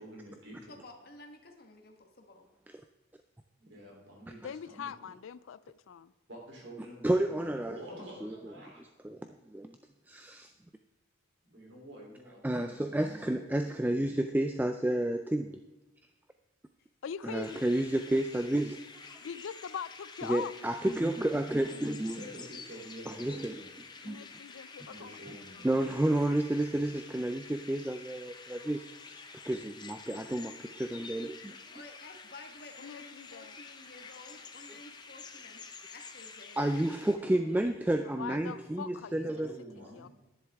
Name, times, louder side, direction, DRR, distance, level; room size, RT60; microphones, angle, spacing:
voice 1, 0.0-0.8 3.6-4.9 6.3-8.8 11.5-13.0 13.4-13.5 13.8-14.2 21.7-23.7 24.8-25.9 39.1-40.1, equal, 60° right, -1 dB, 3.3 m, -48 dB
voice 2, 0.7-2.5 16.8-16.9 31.7-35.6 35.9-37.6 40.0-40.1, left 2 dB, 50° left, 3 dB, 1.3 m, -52 dB
voice 3, 4.4-5.6 5.9-6.1 17.0-17.7 19.2-20.5 24.0-25.2 32.8-33.6 38.2-39.5 39.9-40.1, left 7 dB, 75° left, 18 dB, 0.4 m, -42 dB
voice 4, 7.0-7.8 8.2-8.3 9.0-9.8 10.1-10.5 12.4-15.6 17.2-19.2 20.2-22.2 23.1-23.6 24.0-24.2 25.6-29.2 29.5-31.6 36.6-39.5, right 1 dB, 10° right, 7 dB, 0.3 m, -31 dB
sound 1, 17.4-37.2, left 4 dB, 20° left, 0.7 m, -49 dB
10.5 x 10.5 x 3.5 m, 1.1 s
head